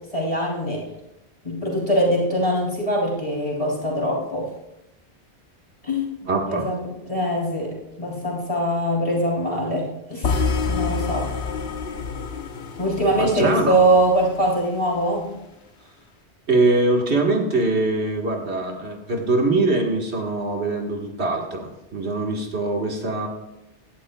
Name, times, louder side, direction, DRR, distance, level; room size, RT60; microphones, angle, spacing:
voice 1, 0.1-0.8 1.4-4.5 5.8-10.4 10.7-11.3 12.8-15.3, right 1 dB, 30° left, -3 dB, 3.7 m, -23 dB
voice 2, 6.3-6.7 13.2-13.8 16.5-23.3, right 2 dB, 80° right, 1 dB, 1.9 m, -22 dB
sound 1, 10.2-14.3, left 4 dB, 70° left, 1.2 m, -27 dB
17.0 x 11.5 x 2.3 m, 0.92 s
omnidirectional pair, 1.1 m